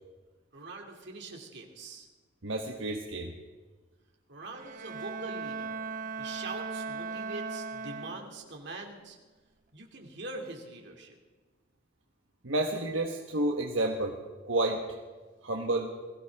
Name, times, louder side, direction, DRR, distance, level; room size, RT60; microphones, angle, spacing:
voice 1, 0.5-2.1 4.3-5.8 6.2-9.2 9.7-11.1, right 2 dB, 60° right, 1 dB, 2.5 m, -43 dB
voice 2, 2.4-3.3 12.4-14.2 14.4-14.8 15.4-15.9, right 2 dB, 80° right, 1 dB, 1.2 m, -30 dB
Bowed string instrument, 4.5-8.6, right 5 dB, 45° right, 0.7 m, -38 dB
21.5 x 16.0 x 3.6 m, 1.3 s
head